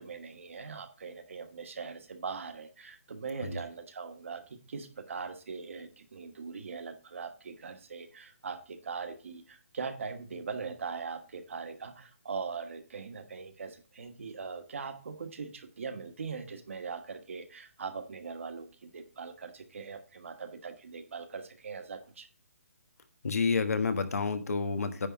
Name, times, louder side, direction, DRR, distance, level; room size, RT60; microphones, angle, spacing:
voice 1, 0.0-22.3, right 5 dB, 60° right, 7 dB, 1.4 m, -41 dB
voice 2, 23.2-25.1, left 4 dB, 85° left, 8 dB, 1.4 m, -29 dB
9.9 x 3.7 x 7.2 m, 0.36 s
hypercardioid pair, 175°, 8 cm